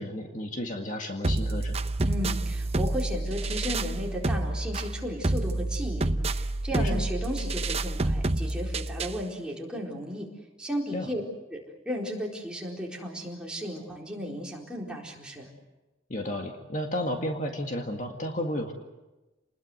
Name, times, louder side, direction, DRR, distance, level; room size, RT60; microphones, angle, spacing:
voice 1, 0.0-1.8 6.7-7.0 10.9-11.1 16.1-18.7, left 1 dB, 40° left, 3 dB, 1.9 m, -32 dB
sound 1, 1.2-9.2, right 2 dB, 30° right, 0.8 m, -28 dB
voice 2, 2.0-10.3 10.6-11.2 11.5-15.5, equal, 5° right, -2 dB, 4.2 m, -35 dB
29.0 x 20.5 x 7.9 m, 1.1 s
head